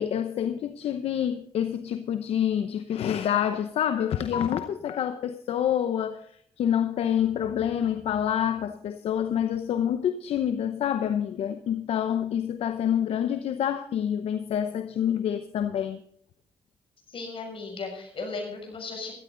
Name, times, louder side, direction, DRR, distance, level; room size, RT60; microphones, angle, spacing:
voice 1, 0.0-6.3 6.6-16.0, left 9 dB, 80° left, 0.8 m, -27 dB
voice 2, 17.1-19.1, left 3 dB, 60° left, 6.5 m, -36 dB
15.5 x 13.5 x 3.9 m
cardioid pair, 70°, 10 cm